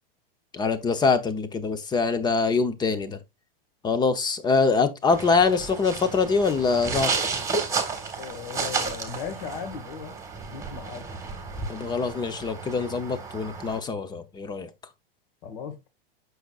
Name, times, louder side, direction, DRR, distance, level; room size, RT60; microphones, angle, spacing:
voice 1, 0.5-3.2 3.8-7.1 11.7-14.7, left 4 dB, 15° left, 0.7 m, -24 dB
sound 1, 5.1-13.8, right 4 dB, 10° right, 1.5 m, -32 dB
voice 2, 8.2-10.2 10.5-11.1 15.4-15.9, left 7 dB, 50° left, 1.9 m, -37 dB
7.8 x 6.2 x 2.4 m
supercardioid pair, 135°, 29 cm